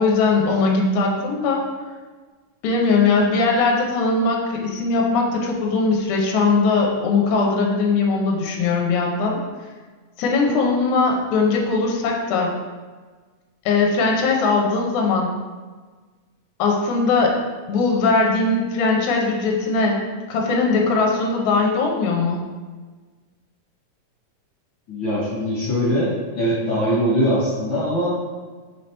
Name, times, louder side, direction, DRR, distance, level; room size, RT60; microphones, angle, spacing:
voice 1, 0.0-1.6 2.6-9.4 10.2-12.5 13.7-15.3 16.6-17.4 17.7-20.0 20.3-22.4, left 3 dB, 80° left, 0 dB, 2.0 m, -20 dB
voice 2, 24.9-28.3, equal, 50° left, -11 dB, 1.8 m, -22 dB
5.4 x 3.2 x 2.9 m, 1.4 s
omnidirectional pair, 3.5 m